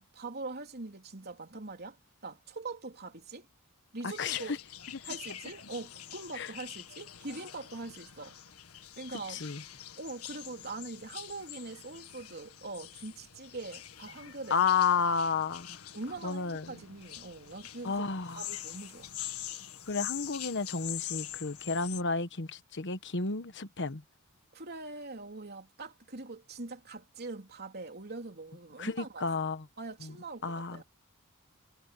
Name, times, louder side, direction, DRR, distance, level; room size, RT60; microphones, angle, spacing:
voice 1, 0.0-3.5 3.9-4.6 5.0-8.4 9.0-9.4 10.0-14.6 15.9-18.1 18.3-19.2 24.5-29.3 29.8-30.8, right 3 dB, 50° right, 3.6 m, -43 dB
voice 2, 4.0-4.4 6.4-6.5 9.3-9.6 14.5-15.8 16.2-16.7 17.8-18.4 19.9-24.0 28.8-29.6 30.0-30.1 30.4-30.8, left 5 dB, 55° left, 1.3 m, -31 dB
sound 1, 4.1-22.0, left 12 dB, 90° left, 1.7 m, -44 dB
head